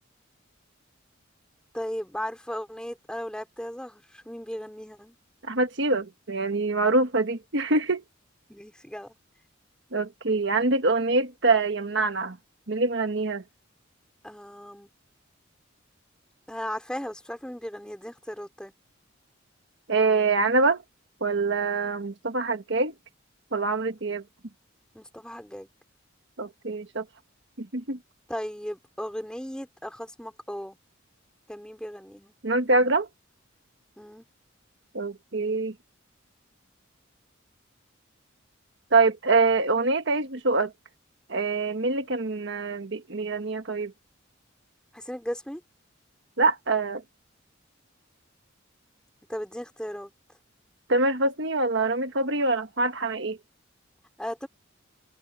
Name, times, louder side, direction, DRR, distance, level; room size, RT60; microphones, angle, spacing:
voice 1, 1.7-5.2 8.5-9.1 14.2-14.9 16.5-18.7 24.9-25.7 28.3-30.8 31.5-32.3 34.0-34.2 44.9-45.6 49.3-50.1 54.2-54.5, equal, 5° left, 4.1 m, -36 dB
voice 2, 5.4-8.0 9.9-12.4 12.7-13.4 19.9-20.8 21.2-22.9 23.5-24.2 26.4-27.0 27.6-28.0 32.4-33.1 34.9-35.7 38.9-40.7 41.3-43.9 46.4-47.0 50.9-53.4, right 3 dB, 60° right, 1.4 m, -25 dB
head